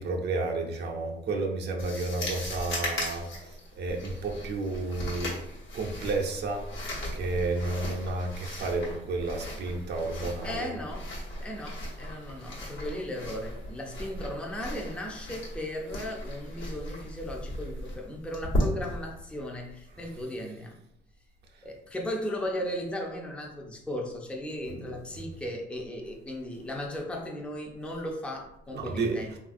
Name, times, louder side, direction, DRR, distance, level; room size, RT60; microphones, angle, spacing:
voice 1, 0.0-5.3 5.7-6.7 7.1-10.7 24.7-24.8 25.1-25.2 28.7-29.2, right 3 dB, 55° right, 2 dB, 0.5 m, -31 dB
sound 1, 1.8-20.2, left 1 dB, 75° left, 1.1 m, -36 dB
voice 2, 10.4-11.1 11.4-20.8 21.6-29.4, left 1 dB, 5° left, 0 dB, 0.4 m, -36 dB
3.1 x 2.4 x 2.5 m, 0.78 s
cardioid pair, 110°, 21 cm